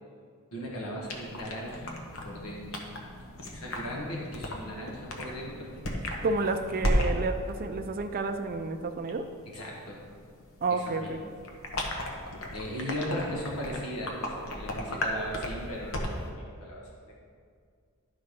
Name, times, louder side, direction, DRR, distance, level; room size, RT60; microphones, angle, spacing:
voice 1, 0.5-1.9 2.2-2.8 3.4-5.7 9.5-10.0 10.7-11.3 12.5-17.1, equal, 80° left, -3 dB, 1.4 m, -37 dB
sound 1, 1.0-16.3, left 1 dB, 65° left, 1.1 m, -35 dB
voice 2, 6.2-9.3 10.6-11.2, right 3 dB, 40° right, 6 dB, 0.4 m, -30 dB
11.5 x 4.0 x 5.1 m, 2.1 s
head